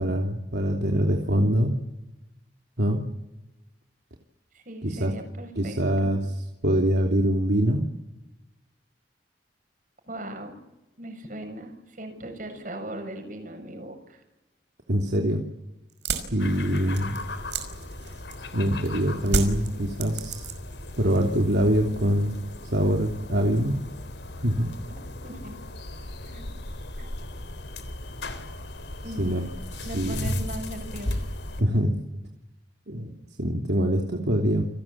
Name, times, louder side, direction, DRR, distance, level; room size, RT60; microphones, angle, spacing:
voice 1, 0.0-1.7 2.8-3.0 4.8-5.1 5.5-6.2 6.6-7.8 14.9-15.4 16.3-17.2 18.5-20.4 21.0-22.4 22.7-23.7 24.4-24.7 29.2-29.5 29.7-30.3 31.6-31.9 32.9-34.6, equal, 70° right, 1 dB, 3.0 m, -24 dB
voice 2, 4.5-6.2 10.1-10.6 11.0-14.2 25.2-25.6 26.2-26.5 27.0-27.1 29.0-29.3 29.8-31.3, right 1 dB, 50° right, 6 dB, 7.1 m, -39 dB
sound 1, 15.9-18.6 19.3-20.8 21.1-21.7, right 4 dB, 90° right, 5.3 m, -31 dB
sound 2, 16.4-31.6, left 1 dB, 85° left, 3.7 m, -36 dB
29.5 x 18.5 x 8.6 m, 0.96 s
head